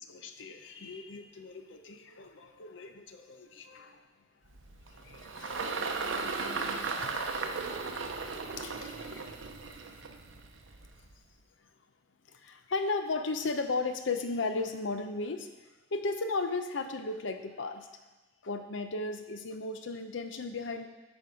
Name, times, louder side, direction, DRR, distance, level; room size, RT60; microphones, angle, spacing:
voice 1, 0.1-4.0 4.9-6.7 7.0-7.2 8.6-9.3 9.9-10.0 12.3-15.5 15.9-17.9 18.4-20.9, left 3 dB, 75° left, 7 dB, 0.7 m, -36 dB
Engine, 4.5-11.1, right 4 dB, 85° right, 0.7 m, -36 dB
9.0 x 5.4 x 4.9 m, 1.2 s
head